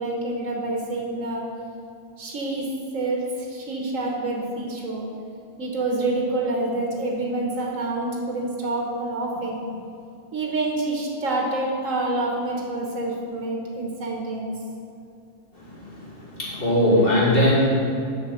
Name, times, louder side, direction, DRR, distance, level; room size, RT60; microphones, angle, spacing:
voice 1, 0.0-1.4 2.2-5.1 5.6-9.6 10.3-14.5, right 2 dB, 85° right, -1 dB, 1.7 m, -27 dB
voice 2, 15.5-17.7, left 1 dB, 45° left, -6 dB, 2.6 m, -21 dB
7.9 x 6.4 x 6.4 m, 2.5 s
omnidirectional pair, 1.3 m